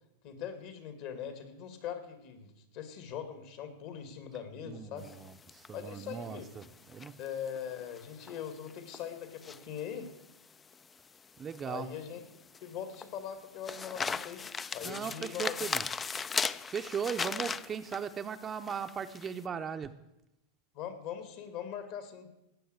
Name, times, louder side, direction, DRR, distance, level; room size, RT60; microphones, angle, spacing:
voice 1, 0.2-5.1 5.7-6.5 7.2-10.1 11.6-12.2 12.6-14.4 14.7-15.6 20.7-22.3, left 8 dB, 55° left, 9 dB, 2.5 m, -41 dB
voice 2, 4.7-7.1 11.4-11.9 14.8-15.9 16.7-19.9, right 7 dB, 20° right, 8 dB, 0.6 m, -38 dB
sound 1, 5.0-19.4, left 5 dB, 20° left, 0.4 m, -39 dB
17.5 x 6.5 x 7.9 m, 0.90 s
supercardioid pair, 130°, 0 cm